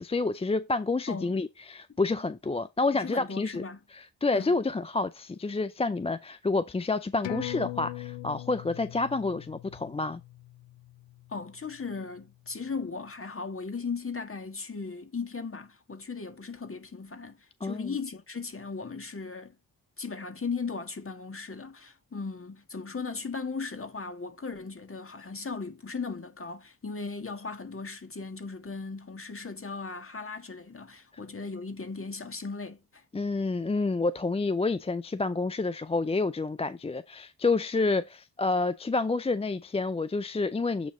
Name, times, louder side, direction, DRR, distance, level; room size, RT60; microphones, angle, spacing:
voice 1, 0.0-3.6 3.9-10.2 17.6-17.9 33.1-40.9, left 3 dB, 15° left, 0.4 m, -29 dB
voice 2, 2.9-3.8 4.3-4.6 11.3-19.5 20.0-33.0, left 4 dB, 30° left, 1.7 m, -37 dB
sound 1, 7.2-12.2 12.5-12.6, left 17 dB, 90° left, 0.5 m, -41 dB
8.2 x 3.0 x 4.9 m
supercardioid pair, 45°, 42 cm